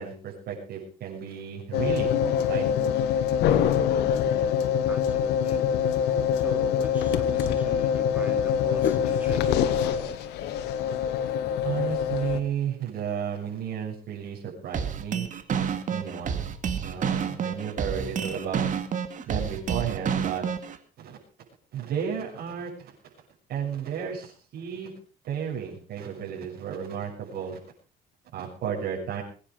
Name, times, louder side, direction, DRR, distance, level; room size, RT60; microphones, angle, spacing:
voice 1, 0.0-2.9 11.6-15.3 15.9-16.4 16.8-18.6 19.3-20.5 21.0-21.2 21.7-22.9 23.5-24.9 25.2-27.6 28.3-29.2, right 8 dB, 70° right, -2 dB, 6.4 m, -33 dB
sound 1, 1.7-12.4, left 8 dB, 85° left, 1.9 m, -25 dB
voice 2, 4.9-5.6 6.3-10.2 19.2-19.3, right 1 dB, 10° right, 5 dB, 3.9 m, -41 dB
sound 2, 14.7-20.8, right 7 dB, 50° right, 2.4 m, -29 dB
22.5 x 10.0 x 5.2 m, 0.39 s
cardioid pair, 110°, 17 cm